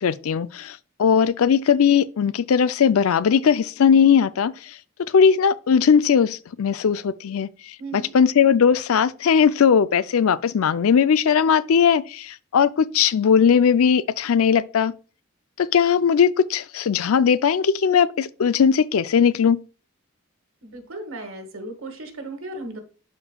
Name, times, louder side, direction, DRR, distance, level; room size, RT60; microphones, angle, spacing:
voice 1, 0.0-14.9 15.6-19.6, left 7 dB, 80° left, 0.4 m, -19 dB
voice 2, 7.8-8.1 20.6-22.8, right 2 dB, 70° right, 1.7 m, -36 dB
11.5 x 4.3 x 2.3 m
head